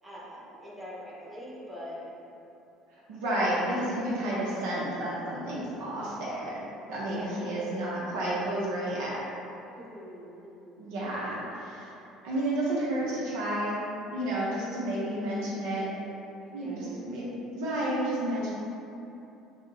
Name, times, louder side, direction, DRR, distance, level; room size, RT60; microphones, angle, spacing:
voice 1, 0.0-2.1 3.5-3.7 7.1-7.6 9.7-10.9 16.4-17.2, equal, 20° right, -7 dB, 0.9 m, -44 dB
voice 2, 3.1-6.6 6.9-9.2 10.8-11.9 12.2-13.8 14.1-15.9 16.5-18.5, right 1 dB, 75° right, -7 dB, 0.5 m, -31 dB
2.5 x 2.0 x 3.8 m, 2.9 s
hypercardioid pair, 65°, 0 cm